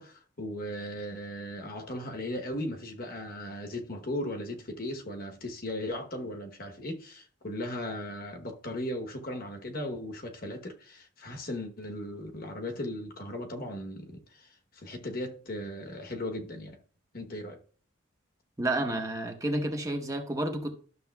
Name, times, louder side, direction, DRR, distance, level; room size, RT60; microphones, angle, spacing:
voice 1, 0.0-16.8 17.1-17.6, left 1 dB, 45° left, 1.0 m, -37 dB
voice 2, 18.6-20.7, right 1 dB, 15° right, 0.9 m, -30 dB
12.0 x 6.7 x 2.3 m
head